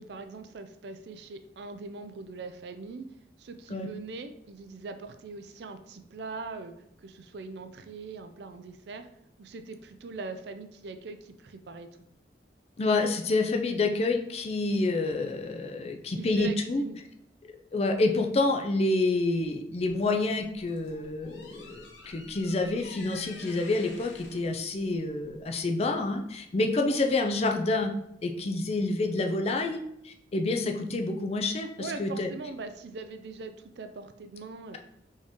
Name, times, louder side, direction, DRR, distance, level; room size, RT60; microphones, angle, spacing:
voice 1, 0.0-3.1 3.4-6.7 7.0-9.1 9.4-11.9 16.2-17.0 26.8-27.0 31.8-34.8, right 3 dB, 65° right, 8 dB, 0.4 m, -41 dB
voice 2, 12.8-16.8 17.7-27.9 28.2-32.3, left 2 dB, 35° left, 4 dB, 0.4 m, -28 dB
sound 1, 20.4-25.6, left 3 dB, 85° left, 0.8 m, -49 dB
4.4 x 3.5 x 3.0 m, 0.77 s
head